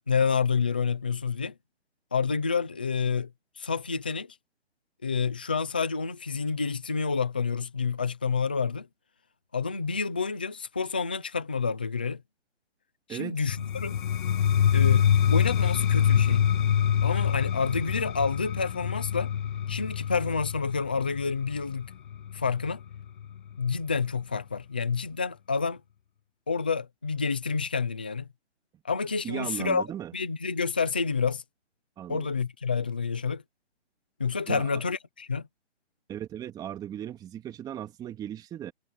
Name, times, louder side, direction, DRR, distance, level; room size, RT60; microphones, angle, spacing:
voice 1, 0.0-1.5 2.1-3.3 3.6-4.3 5.0-8.9 9.5-12.2 13.1-14.0 14.7-16.5 17.0-19.3 19.7-21.9 22.3-22.8 23.6-25.8 26.5-28.3 28.8-29.9 30.1-31.4 32.1-33.4 34.2-35.5, left 5 dB, 10° left, 0.4 m, -28 dB
voice 2, 13.1-13.4 29.2-30.1 32.0-32.3 34.5-34.8 36.1-38.7, right 10 dB, 10° right, 2.5 m, -37 dB
sound 1, 13.5-23.3, left 9 dB, 45° left, 1.1 m, -25 dB
hypercardioid pair, 155°, 34 cm